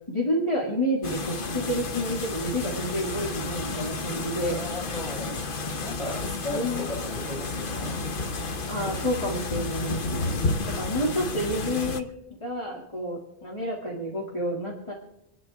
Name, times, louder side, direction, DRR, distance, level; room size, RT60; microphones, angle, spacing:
voice 1, 0.1-4.6 6.0-6.2 6.5-6.9 8.7-10.3 10.7-12.1 12.4-14.9, equal, 30° left, -4 dB, 2.4 m, -29 dB
sound 1, 1.0-12.0, left 3 dB, 60° left, 1.1 m, -31 dB
voice 2, 4.3-5.4 5.8-8.4 10.0-10.8, left 1 dB, ahead, -5 dB, 4.9 m, -37 dB
28.5 x 10.0 x 3.6 m, 0.83 s
omnidirectional pair, 1.0 m